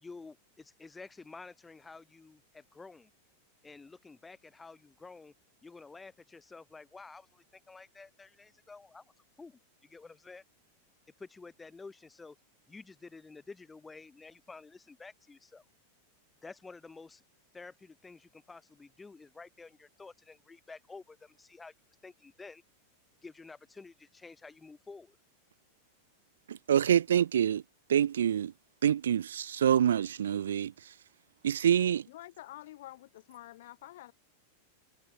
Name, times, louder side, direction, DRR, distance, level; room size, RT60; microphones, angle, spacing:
voice 1, 0.0-3.1 3.6-5.3 5.6-9.0 9.4-10.4 11.2-12.4 12.7-15.7 16.4-17.2 17.5-21.7 22.0-22.6 23.2-25.2, left 4 dB, 10° left, 2.3 m, -50 dB
voice 2, 26.5-27.6 27.9-28.5 28.8-30.9 31.4-32.0, right 9 dB, 65° right, 0.4 m, -26 dB
voice 3, 32.1-34.1, left 15 dB, 55° left, 1.5 m, -48 dB
figure-of-eight pair, 90°, 0 cm